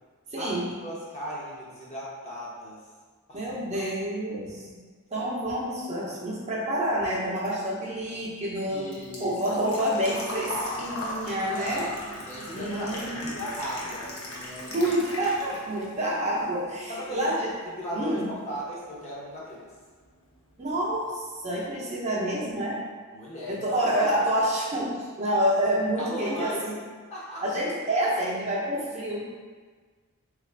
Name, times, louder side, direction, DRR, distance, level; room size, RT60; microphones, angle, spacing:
voice 1, 0.3-0.7 3.3-4.7 5.1-8.9 9.2-11.9 12.2-13.3 14.7-17.5 17.9-18.3 20.6-22.8 23.5-26.8 27.4-29.3, right 1 dB, 30° right, -6 dB, 0.6 m, -28 dB
voice 2, 0.8-2.8 3.3-3.4 3.7-3.9 5.1-5.3 8.7-9.3 11.5-14.8 16.9-17.3 17.8-19.7 23.1-24.1 26.0-26.6 27.1-27.4, equal, 30° left, -6 dB, 0.7 m, -37 dB
Engine / Trickle dribble / Fill (with liquid), 8.0-15.9 16.2-17.2 17.5-17.6 19.5-19.6 19.8-20.1 20.5-20.6 20.8-20.9, left 1 dB, 80° left, 0.7 m, -38 dB
3.5 x 2.4 x 3.2 m, 1.5 s
head